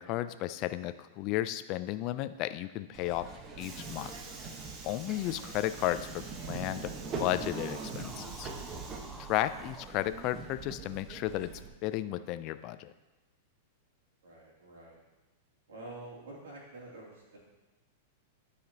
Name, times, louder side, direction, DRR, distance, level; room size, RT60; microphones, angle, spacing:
voice 1, 0.0-3.3 3.6-4.1 4.8-6.9 7.2-8.5 9.2-11.5 11.8-12.9, left 14 dB, 45° left, 13 dB, 0.4 m, -33 dB
Subway metro underground, 2.9-11.7, right 4 dB, 30° right, 1.0 m, -42 dB
sound 1, 7.9-10.0, right 1 dB, 5° right, 0.5 m, -50 dB
voice 2, 14.2-15.0 15.7-17.4, right 2 dB, 80° right, -4 dB, 2.7 m, -48 dB
11.5 x 4.9 x 2.8 m, 1.1 s
hypercardioid pair, 110°, 0 cm